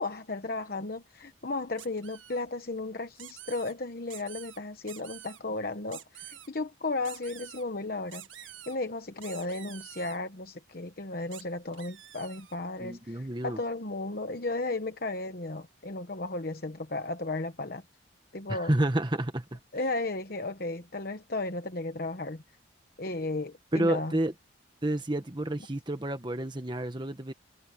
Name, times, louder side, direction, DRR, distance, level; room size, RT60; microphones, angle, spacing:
voice 1, 0.0-17.8 18.3-18.7 19.7-22.4 23.0-24.1, left 2 dB, 50° left, 1.1 m, -34 dB
sound 1, 1.8-2.4 3.2-3.7 4.1-4.6 4.9-5.4 5.9-6.5 7.0-7.6 8.1-8.8 9.2-10.2 11.3-11.4 11.7-12.6, right 12 dB, 75° right, 1.5 m, -47 dB
voice 2, 12.8-13.6 18.5-19.6 23.7-24.3 24.8-27.3, right 1 dB, 25° right, 1.2 m, -30 dB
head